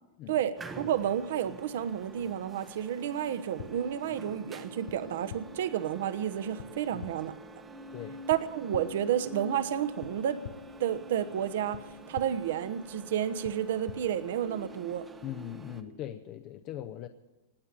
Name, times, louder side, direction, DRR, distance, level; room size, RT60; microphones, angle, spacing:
voice 1, 0.3-7.3 8.3-10.4 10.8-15.1, right 10 dB, 60° right, 13 dB, 1.0 m, -31 dB
sound 1, 0.6-15.8, right 3 dB, 10° right, 0.8 m, -51 dB
sound 2, 2.9-15.9, equal, 75° right, 3.9 m, -49 dB
sound 3, 3.6-3.7 4.9-5.0 5.3-5.4 6.6-6.7 7.0-7.1 8.3-8.4 8.7-8.8 10.0-10.1 10.4-10.5 11.7-11.8 12.1-12.3 13.4-13.5 13.9-14.0, left 10 dB, 70° left, 0.7 m, -41 dB
voice 2, 15.2-17.1, left 12 dB, 30° left, 7 dB, 0.6 m, -40 dB
18.5 x 8.5 x 9.0 m, 1.0 s
supercardioid pair, 170°, 0 cm